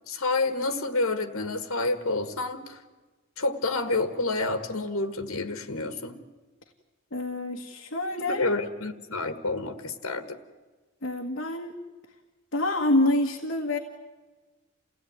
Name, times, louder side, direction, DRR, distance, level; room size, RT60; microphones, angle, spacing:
voice 1, 0.1-2.8 3.4-6.2 8.2-10.4, left 2 dB, 85° left, 9 dB, 1.6 m, -29 dB
voice 2, 7.1-8.5 11.0-11.7 12.5-13.8, left 1 dB, 60° left, 1 dB, 1.7 m, -26 dB
28.5 x 16.5 x 9.5 m, 1.3 s
head